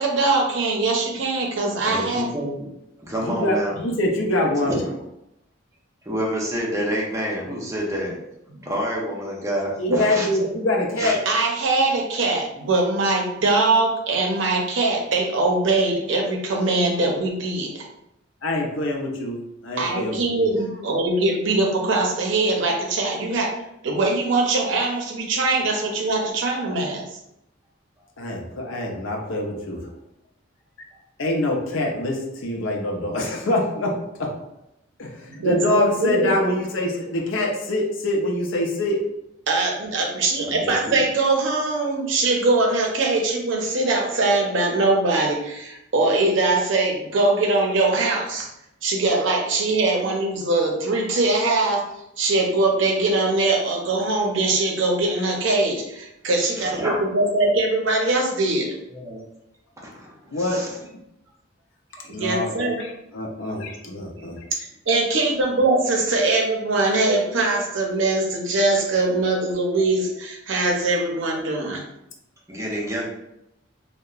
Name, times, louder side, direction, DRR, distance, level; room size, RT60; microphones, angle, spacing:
voice 1, 0.0-2.3 9.9-10.0 11.3-17.9 19.8-23.5 23.8-27.0 35.3-36.3 39.5-48.5 48.8-51.8 52.2-58.7 62.2-62.8 64.6-71.8, right 2 dB, 65° right, 0 dB, 0.6 m, -22 dB
voice 2, 1.8-2.7 3.0-3.7 4.6-4.8 6.0-8.2 8.6-10.3 11.0-11.2 40.4-41.0 56.6-57.0 58.9-59.2 59.8-60.8 62.0-62.1 62.4-62.8 72.5-73.1, equal, 15° right, -3 dB, 0.5 m, -28 dB
voice 3, 3.2-4.7 9.8-11.2 18.4-19.4 19.6-20.4 28.2-29.9 31.2-34.3 35.0-39.0 60.3-61.0 62.1-64.5, left 1 dB, 70° left, 1 dB, 0.5 m, -25 dB
2.8 x 2.1 x 2.3 m, 0.84 s
head